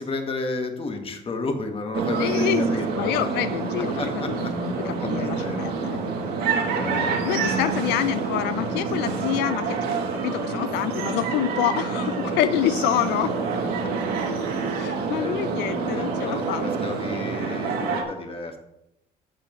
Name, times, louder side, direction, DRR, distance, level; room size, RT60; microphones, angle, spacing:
voice 1, 0.0-3.3 4.0-4.5 4.8-5.6 6.7-7.0 13.8-13.9 15.2-18.6, left 3 dB, 35° left, 4 dB, 1.6 m, -32 dB
sound 1, 1.9-18.0, right 4 dB, 75° right, 2.0 m, -27 dB
voice 2, 2.2-6.0 7.2-9.8 10.2-13.3 14.8-16.6, left 12 dB, 90° left, 12 dB, 0.4 m, -27 dB
14.0 x 6.9 x 3.1 m, 0.85 s
cardioid pair, 110°, 17 cm